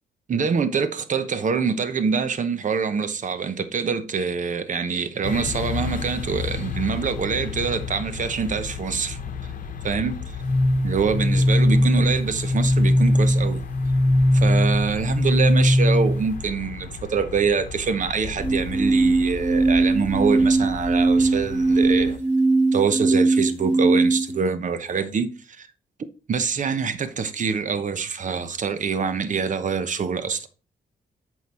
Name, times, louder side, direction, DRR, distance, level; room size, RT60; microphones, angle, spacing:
voice 1, 0.3-9.2 9.8-10.2 10.8-13.6 14.3-22.2 22.7-25.7 26.3-30.5, right 5 dB, 50° right, 0.9 m, -25 dB
sound 1, 5.2-22.2, left 6 dB, 50° left, 1.0 m, -34 dB
sound 2, 10.4-16.4 18.4-24.4, right 1 dB, 10° left, 2.6 m, -20 dB
7.9 x 4.6 x 4.3 m
cardioid pair, 105°, 17 cm